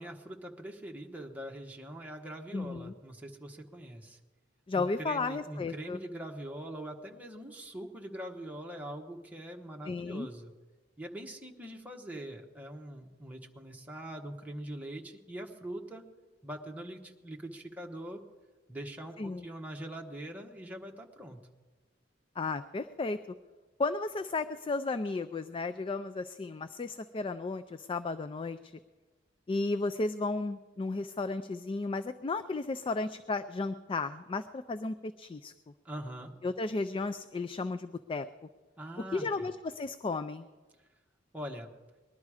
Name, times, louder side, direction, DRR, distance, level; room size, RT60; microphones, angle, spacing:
voice 1, 0.0-4.2 4.7-10.5 11.0-16.0 16.4-18.2 18.7-21.4 35.8-36.3 38.8-39.5 41.3-41.7, right 1 dB, 10° right, 1 dB, 1.1 m, -43 dB
voice 2, 2.5-2.9 4.7-6.0 9.8-10.3 19.2-19.4 22.4-23.2 23.8-28.7 29.5-35.5 36.4-38.3 39.1-40.5, left 3 dB, 30° left, 10 dB, 0.4 m, -34 dB
20.0 x 11.5 x 4.9 m, 1.3 s
head